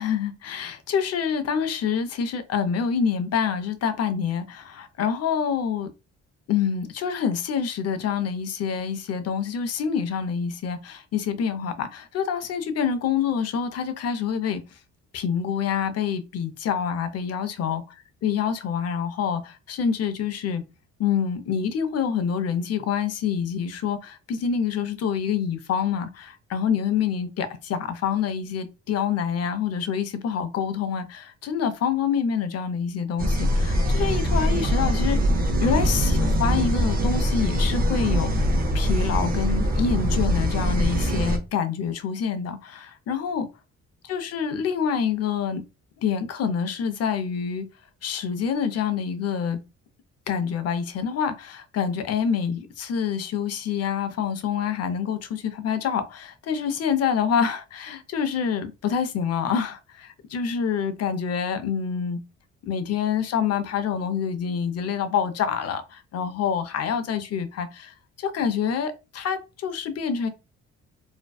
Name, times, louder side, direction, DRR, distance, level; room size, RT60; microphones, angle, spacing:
voice 1, 0.0-5.9 6.5-14.8 15.1-17.8 18.2-20.6 21.0-35.2 35.6-38.5 38.7-43.5 44.1-45.6 46.0-47.6 48.0-49.6 50.3-62.2 62.6-70.3, left 7 dB, 55° left, 0.5 m, -26 dB
sound 1, 33.2-41.4, equal, 30° right, 0.5 m, -23 dB
2.5 x 2.2 x 2.2 m
cardioid pair, 90°, 30 cm